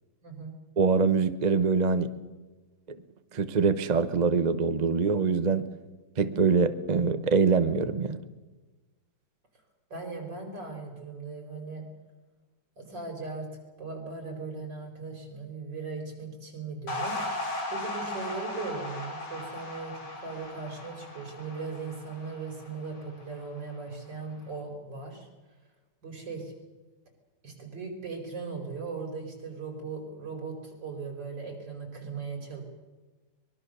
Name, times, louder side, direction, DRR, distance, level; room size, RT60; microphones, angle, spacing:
voice 1, 0.2-0.5 9.9-11.9 12.8-13.5 13.8-17.2 17.7-25.3 26.0-26.5 27.4-32.6, right 4 dB, 65° right, 2 dB, 5.8 m, -38 dB
voice 2, 0.8-2.1 3.3-5.6 6.2-8.2, right 5 dB, 35° right, 11 dB, 0.7 m, -24 dB
sound 1, 16.9-23.4, left 2 dB, 60° left, 4.0 m, -37 dB
24.0 x 22.0 x 6.8 m, 1.2 s
omnidirectional pair, 2.1 m